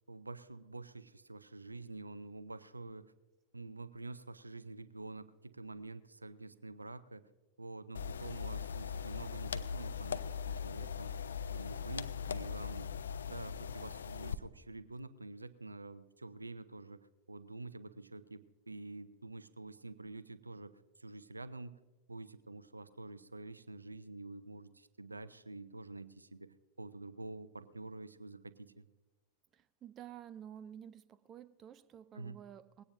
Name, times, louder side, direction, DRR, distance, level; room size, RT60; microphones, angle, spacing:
voice 1, 0.1-3.1 3.5-7.3 7.6-11.2 11.5-12.9 13.3-21.7 22.1-28.9 32.1-32.4, right 2 dB, 80° right, 0.5 m, -48 dB
sound 1, 7.9-14.3, left 7 dB, 70° left, 0.5 m, -40 dB
voice 2, 29.5-32.8, right 9 dB, 30° right, 0.5 m, -51 dB
20.0 x 17.0 x 2.6 m
figure-of-eight pair, 90°, 0 cm